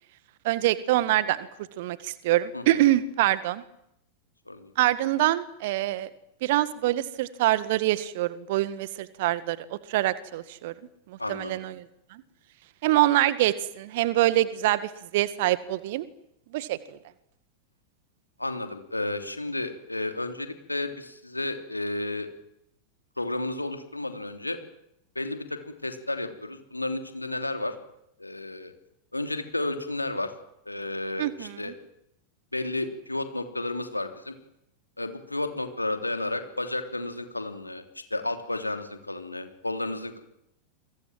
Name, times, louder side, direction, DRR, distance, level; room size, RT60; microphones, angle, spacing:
voice 1, 0.4-1.5 1.8-3.6 4.8-6.1 6.4-10.7 11.1-11.8 12.1-12.2 12.8-16.1 16.5-17.0 31.2-31.7, right 15 dB, 50° right, 15 dB, 1.8 m, -25 dB
voice 2, 2.5-2.9 4.5-4.7 11.2-11.6 18.4-22.3 23.2-24.6 25.1-27.7 28.2-28.7 29.1-30.3 30.6-31.7 32.5-34.3 35.0-37.8 38.1-40.2, left 2 dB, 85° left, 7 dB, 3.2 m, -32 dB
29.5 x 23.5 x 7.7 m, 0.78 s
figure-of-eight pair, 90°, 0 cm